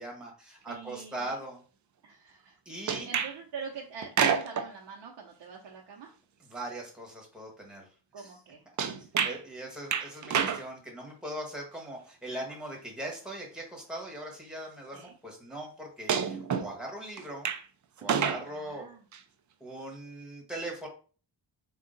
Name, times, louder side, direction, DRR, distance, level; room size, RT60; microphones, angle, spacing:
voice 1, 0.0-1.6 2.6-3.1 6.5-7.9 8.2-8.3 9.0-17.5 18.0-18.9 19.6-20.9, right 1 dB, ahead, -1 dB, 1.3 m, -40 dB
voice 2, 0.7-1.4 2.0-6.1 8.1-8.6 14.9-15.1 18.5-19.0, right 5 dB, 75° right, -1 dB, 0.7 m, -44 dB
sound 1, 2.9-3.4 4.0-4.7 8.8-9.4 9.9-10.7 12.5-12.6 13.8-13.9 16.1-16.7 17.2-17.6 18.0-18.4 19.1-19.2, right 7 dB, 45° right, 0.4 m, -28 dB
3.7 x 2.3 x 3.8 m, 0.39 s
wide cardioid pair, 120°, 43 cm